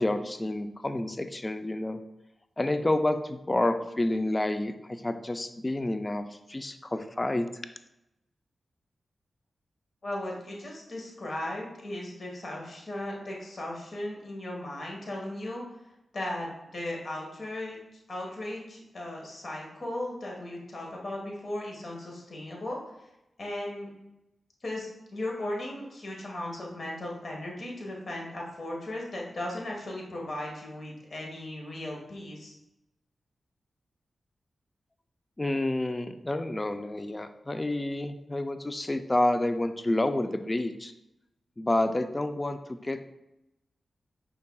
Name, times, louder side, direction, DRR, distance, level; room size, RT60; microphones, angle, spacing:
voice 1, 0.0-2.0 2.6-4.7 5.0-6.2 6.5-7.5 35.4-40.9 41.6-43.1, left 1 dB, 30° left, 9 dB, 0.4 m, -29 dB
voice 2, 10.0-15.6 16.1-17.8 18.1-22.8 23.4-23.9 24.6-32.5, left 1 dB, 60° left, -2 dB, 1.2 m, -37 dB
5.4 x 3.6 x 2.2 m, 0.90 s
cardioid pair, 40°, 0 cm